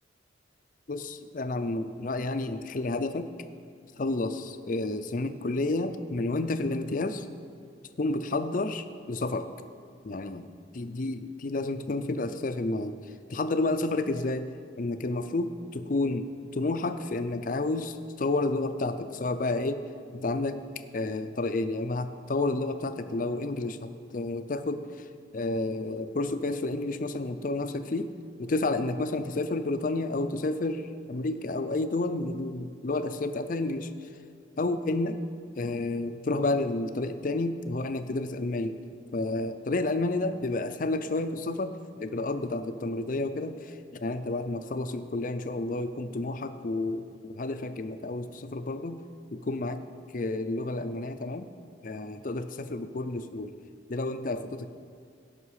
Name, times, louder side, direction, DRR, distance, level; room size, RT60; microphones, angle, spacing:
voice 1, 0.9-3.3 4.0-7.3 8.0-9.5 10.0-10.5 10.7-13.0 13.3-14.5 14.8-19.8 20.1-20.6 20.9-25.1 25.3-28.1 28.4-34.1 34.6-35.2 35.5-38.8 39.1-49.0 49.3-49.8 50.1-51.5 51.8-53.6 53.9-54.7, left 2 dB, 45° left, 10 dB, 0.5 m, -30 dB
17.0 x 5.8 x 4.8 m, 2.2 s
head